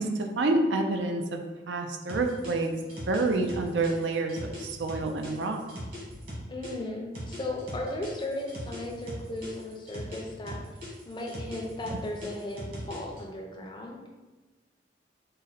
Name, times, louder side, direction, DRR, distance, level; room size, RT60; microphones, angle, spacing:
voice 1, 0.0-1.4 1.7-2.7 3.1-5.6, right 2 dB, 80° right, 4 dB, 0.4 m, -28 dB
sound 1, 2.1-6.7 7.1-10.2 10.5-13.2, equal, 50° right, 1.4 m, -39 dB
voice 2, 6.5-10.6 11.1-14.0, left 1 dB, 25° left, 1 dB, 0.4 m, -36 dB
3.9 x 2.1 x 3.9 m, 1.2 s
head